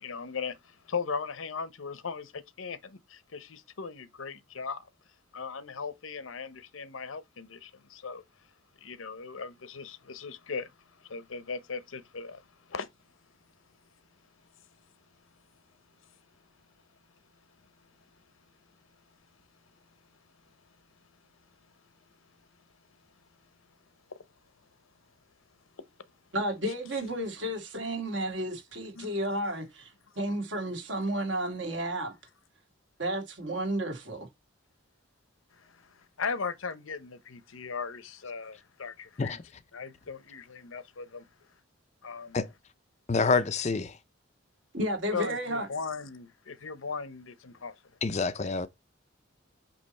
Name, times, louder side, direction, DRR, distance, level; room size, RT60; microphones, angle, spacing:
voice 1, 0.0-4.9 5.3-8.2 8.8-12.9 16.0-16.1 17.6-17.9 19.6-19.7 20.5-20.7 22.0-22.5 24.1-24.2 25.8-25.9 29.0-29.1 35.5-39.4 39.7-41.3 42.0-42.4 45.1-47.8, left 5 dB, 80° left, 0.8 m, -38 dB
voice 2, 26.3-29.9 30.2-32.1 33.0-34.3 44.7-45.7, right 1 dB, 60° right, 2.2 m, -32 dB
voice 3, 43.1-44.0 48.0-48.7, left 4 dB, 35° left, 0.4 m, -27 dB
8.6 x 3.0 x 4.2 m
head